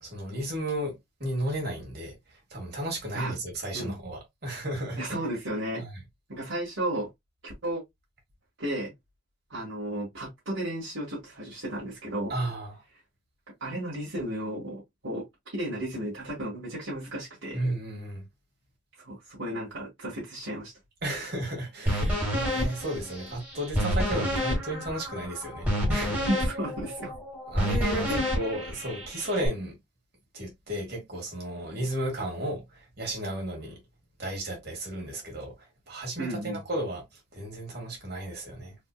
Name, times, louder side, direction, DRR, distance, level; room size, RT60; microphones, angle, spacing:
voice 1, 0.0-2.2 2.5-5.0 5.8-5.9 12.3-12.8 17.5-18.2 21.0-26.3 27.5-29.8 30.3-33.8 34.2-35.5 35.9-37.0 37.3-38.8, right 1 dB, 50° right, 2.0 m, -33 dB
voice 2, 5.0-5.8 6.3-7.1 7.4-7.8 8.6-8.9 9.5-12.3 13.6-17.6 19.0-20.7 26.3-27.1 28.1-28.2 36.2-36.6, right 1 dB, 70° right, 1.7 m, -33 dB
sound 1, 21.9-29.5, equal, 10° right, 1.7 m, -29 dB
4.2 x 3.0 x 2.2 m
head